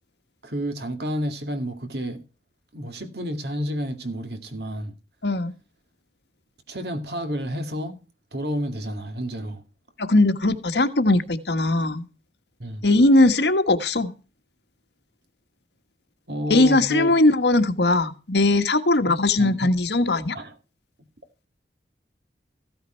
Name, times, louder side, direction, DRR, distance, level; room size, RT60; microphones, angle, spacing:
voice 1, 0.4-2.2 2.7-5.0 6.7-8.0 8.3-9.6 12.6-12.9 16.3-17.2 19.1-19.7 20.3-20.6, equal, 65° right, 2.3 m, -30 dB
voice 2, 5.2-5.5 10.0-12.0 12.8-14.1 16.5-20.4, left 2 dB, 70° left, 1.5 m, -19 dB
15.0 x 9.5 x 4.5 m
head